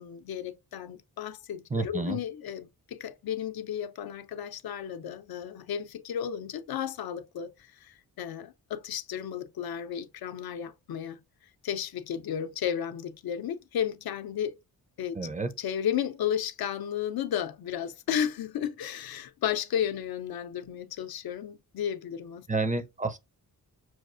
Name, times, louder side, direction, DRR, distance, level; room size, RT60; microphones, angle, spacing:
voice 1, 0.0-11.2 11.6-14.6 15.0-15.2 15.6-22.5 22.7-22.8, left 9 dB, 80° left, 0.5 m, -33 dB
voice 2, 1.7-2.2 15.2-15.5 22.5-23.2, right 3 dB, 20° right, 0.4 m, -30 dB
6.1 x 2.4 x 2.4 m
wide cardioid pair, 100°, 36 cm